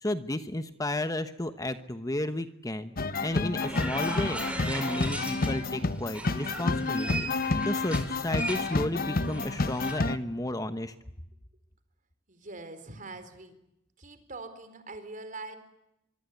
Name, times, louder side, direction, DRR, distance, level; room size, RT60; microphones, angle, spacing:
voice 1, 0.0-2.9 3.2-7.3 7.6-10.9, left 1 dB, 20° left, 10 dB, 1.1 m, -33 dB
sound 1, 3.0-10.2, left 3 dB, 50° left, 1.1 m, -29 dB
sound 2, 3.6-5.7 6.1-9.9, right 2 dB, 5° right, 4.8 m, -38 dB
voice 2, 12.3-13.5 14.0-15.5, right 3 dB, 45° right, 9 dB, 4.2 m, -43 dB
24.5 x 24.0 x 9.6 m, 0.84 s
head